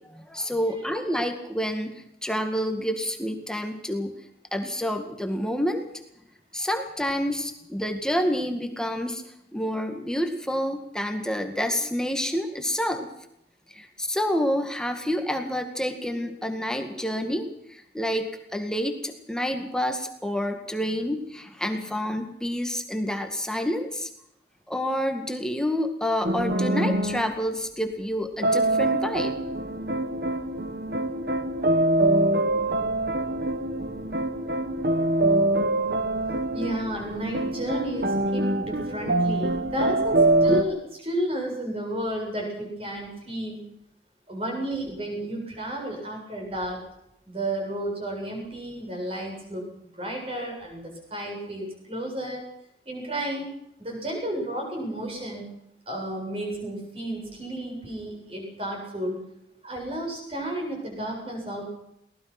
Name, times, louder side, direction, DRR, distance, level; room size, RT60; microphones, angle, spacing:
voice 1, 0.1-4.2 4.5-5.8 6.5-9.2 9.5-13.1 13.7-24.1 24.7-29.3, equal, 5° left, 5 dB, 1.9 m, -28 dB
sound 1, 26.2-27.3 28.4-40.6, right 1 dB, 60° right, 1.6 m, -24 dB
voice 2, 36.5-43.6 44.3-46.8 47.3-49.6 49.9-52.4 52.9-53.5 53.8-55.5 55.9-59.2 59.6-61.7, right 1 dB, 30° right, 0 dB, 7.8 m, -32 dB
23.0 x 19.0 x 6.0 m, 0.79 s
head